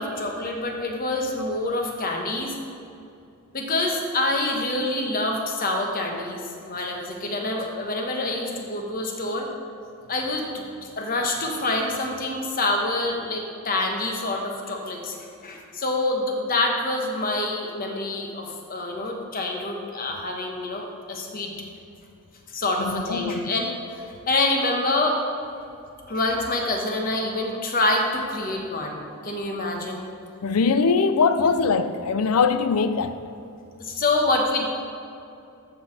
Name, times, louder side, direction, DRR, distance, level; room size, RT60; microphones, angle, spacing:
voice 1, 0.0-2.6 3.5-9.5 10.1-10.7 11.0-15.2 15.4-21.5 22.5-23.7 24.3-25.1 26.1-30.1 33.8-34.7, left 2 dB, 40° left, 1 dB, 1.1 m, -26 dB
voice 2, 22.8-23.4 30.4-33.2, left 5 dB, 85° left, 11 dB, 0.5 m, -21 dB
13.5 x 5.9 x 3.3 m, 2.6 s
head